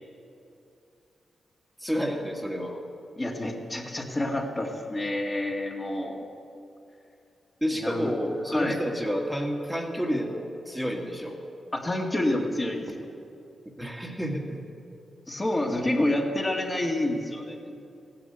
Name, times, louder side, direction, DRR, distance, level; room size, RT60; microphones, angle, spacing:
voice 1, 1.8-2.8 7.6-11.4 13.8-14.6, equal, 5° right, 0 dB, 1.8 m, -30 dB
voice 2, 3.2-6.2 7.7-8.1 8.5-8.8 11.7-13.1 15.3-17.7, left 1 dB, 25° left, -1 dB, 2.0 m, -28 dB
15.0 x 10.5 x 8.0 m, 2.6 s
cardioid pair, 70°, 0 cm